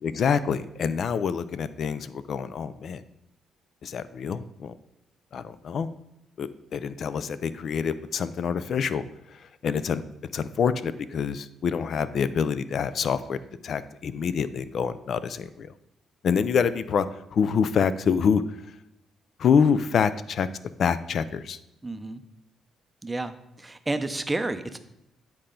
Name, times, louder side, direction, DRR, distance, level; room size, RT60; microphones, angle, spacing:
voice 1, 0.0-3.0 3.8-4.7 5.3-5.9 6.4-9.0 9.6-10.0 10.3-15.7 16.2-17.1 17.3-18.4 19.4-20.5 20.8-21.6, left 6 dB, 60° left, 14 dB, 0.4 m, -26 dB
voice 2, 21.8-22.2 23.0-24.8, right 2 dB, 15° right, 9 dB, 0.5 m, -31 dB
8.6 x 4.4 x 3.8 m, 0.85 s
cardioid pair, 90°, 0 cm